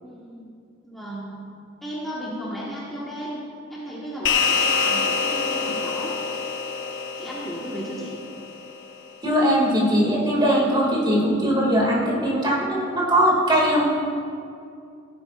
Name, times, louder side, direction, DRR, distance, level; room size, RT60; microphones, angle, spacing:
voice 1, 0.0-0.5 0.8-1.4 1.8-3.4 3.7-6.1 7.2-8.2, equal, ahead, -9 dB, 1.6 m, -34 dB
sound 1, 4.3-8.9, left 5 dB, 60° left, 0.7 m, -26 dB
voice 2, 9.2-13.9, equal, 20° right, -4 dB, 2.5 m, -20 dB
17.0 x 10.0 x 2.6 m, 2.4 s
head